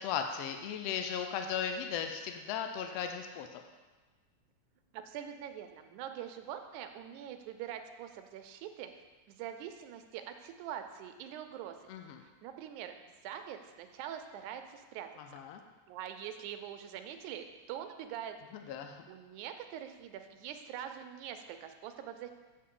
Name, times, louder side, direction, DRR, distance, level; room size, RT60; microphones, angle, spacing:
voice 1, 0.0-3.6 11.9-12.2 15.3-15.6 18.7-19.0, left 7 dB, 80° left, 5 dB, 1.4 m, -36 dB
voice 2, 4.9-8.9 9.3-11.8 12.2-15.4 15.9-18.4 18.7-18.8 19.1-22.3, right 9 dB, 90° right, 7 dB, 2.1 m, -44 dB
8.5 x 6.8 x 3.7 m, 1.3 s
omnidirectional pair, 3.4 m